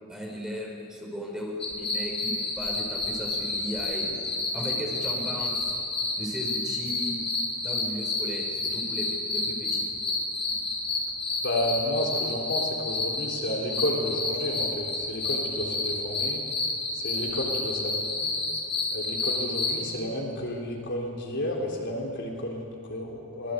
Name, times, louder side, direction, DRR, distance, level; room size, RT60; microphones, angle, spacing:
voice 1, 0.1-4.2 4.5-5.7 6.2-7.2 7.6-9.9, equal, 5° right, -1 dB, 5.1 m, -36 dB
sound 1, 1.6-19.8, left 3 dB, 30° left, 6.6 m, -30 dB
voice 2, 11.4-16.4 16.9-18.3 18.9-23.5, left 1 dB, 55° left, 0 dB, 4.0 m, -31 dB
25.5 x 21.0 x 8.2 m, 2.5 s
head